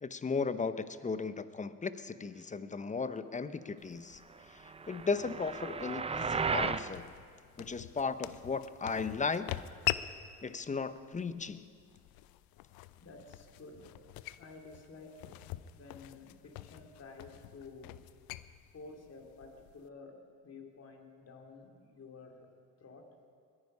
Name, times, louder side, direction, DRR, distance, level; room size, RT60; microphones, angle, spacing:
voice 1, 0.0-4.2 4.5-7.1 7.6-9.6 10.4-11.7, left 4 dB, 20° left, 13 dB, 0.8 m, -36 dB
sound 1, 3.8-19.9, left 15 dB, 75° left, 0.6 m, -44 dB
sound 2, 4.6-6.9, right 5 dB, 15° right, 0.5 m, -34 dB
voice 2, 13.0-13.9 14.4-15.4 15.7-17.9 18.7-22.5 22.8-23.1, left 3 dB, 45° left, 2 dB, 2.8 m, -52 dB
21.5 x 9.7 x 5.5 m, 2.1 s
supercardioid pair, 70°, 36 cm